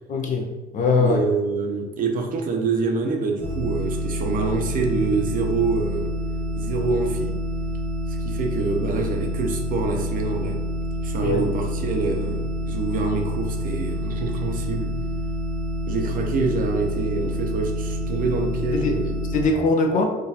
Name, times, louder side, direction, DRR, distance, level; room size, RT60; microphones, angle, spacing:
voice 1, 0.1-1.2 11.2-11.4 18.7-19.0 19.3-20.1, left 3 dB, 50° left, 2 dB, 0.6 m, -21 dB
voice 2, 1.0-6.1 6.6-7.3 8.1-10.6 11.0-14.9 15.9-19.1, right 3 dB, 55° right, 2 dB, 0.6 m, -26 dB
sound 1, 3.4-19.5, equal, 10° left, 1.2 m, -28 dB
3.8 x 2.5 x 2.8 m, 1.2 s
cardioid pair, 110°, 17 cm